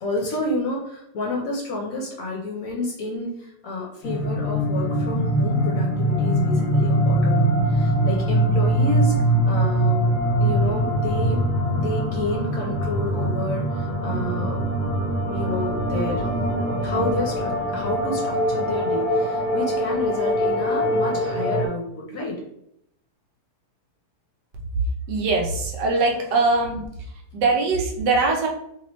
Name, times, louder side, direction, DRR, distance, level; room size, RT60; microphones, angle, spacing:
voice 1, 0.0-9.1 9.4-10.1 10.4-11.4 11.7-14.7 15.3-16.2 16.8-22.4, left 2 dB, 60° left, -1 dB, 1.1 m, -30 dB
sound 1, 4.0-21.7, right 1 dB, 80° left, 0.4 m, -22 dB
voice 2, 25.1-26.9 27.3-28.5, right 3 dB, 75° right, 0 dB, 1.3 m, -21 dB
3.2 x 2.9 x 3.0 m, 0.76 s
omnidirectional pair, 1.9 m